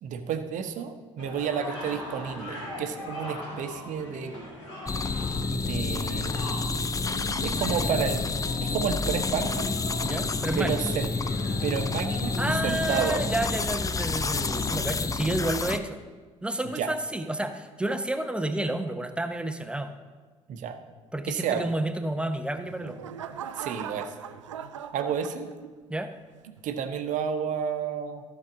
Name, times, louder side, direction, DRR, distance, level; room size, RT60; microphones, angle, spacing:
voice 1, 0.0-4.3 5.5-6.4 7.4-8.2 8.6-9.7 10.6-11.1 11.6-13.2 16.7-16.9 20.5-20.7 21.3-21.7 23.6-24.1 24.9-25.5 26.6-28.2, right 7 dB, 55° right, 7 dB, 1.0 m, -30 dB
sound 1, 1.2-14.8, left 1 dB, 80° left, 2.3 m, -41 dB
sound 2, 4.9-15.8, left 4 dB, 20° left, 0.6 m, -29 dB
voice 2, 10.0-10.9 12.4-16.0 16.4-19.9 21.1-23.1 25.9-26.1, right 1 dB, 5° right, 8 dB, 0.9 m, -30 dB
sound 3, 22.3-25.9 26.5-26.8, right 8 dB, 85° right, 0.4 m, -40 dB
14.5 x 6.6 x 3.7 m, 1.4 s
figure-of-eight pair, 50°, 16 cm